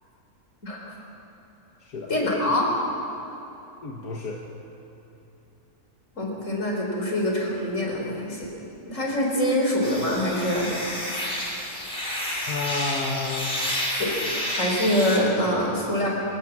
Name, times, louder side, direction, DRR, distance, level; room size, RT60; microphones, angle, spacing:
voice 1, 0.6-1.0 2.1-2.7 6.2-8.5 8.9-10.7 14.0-16.1, left 1 dB, 55° left, -1 dB, 4.7 m, -25 dB
voice 2, 3.8-4.4 12.4-13.8, left 4 dB, 85° left, 1 dB, 2.0 m, -31 dB
sound 1, 9.8-15.2, left 1 dB, 35° left, 3.9 m, -30 dB
25.5 x 17.5 x 7.4 m, 3.0 s
omnidirectional pair, 1.6 m